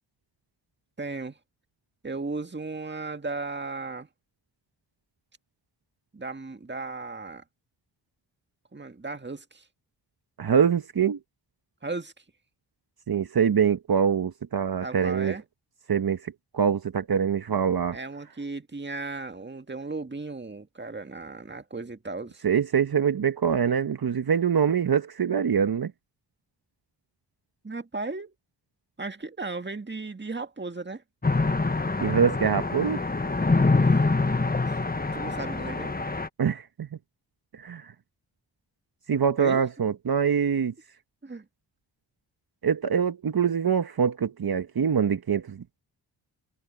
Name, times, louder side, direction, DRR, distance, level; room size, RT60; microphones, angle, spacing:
voice 1, 1.0-1.4 2.0-4.1 6.1-7.4 8.7-9.6 11.8-12.1 14.8-15.4 17.9-22.4 27.6-28.3 29.0-31.0 33.7-34.0 35.1-36.0 39.4-39.6 41.2-41.5, right 3 dB, 25° right, 1.9 m, -35 dB
voice 2, 10.4-11.2 13.1-15.3 15.9-18.0 22.4-25.9 32.0-33.0 36.4-36.9 37.5-37.9 39.1-40.7 42.6-45.8, right 7 dB, 50° right, 1.3 m, -24 dB
sound 1, 31.2-36.3, left 3 dB, 20° left, 1.4 m, -25 dB
supercardioid pair, 40°, 46 cm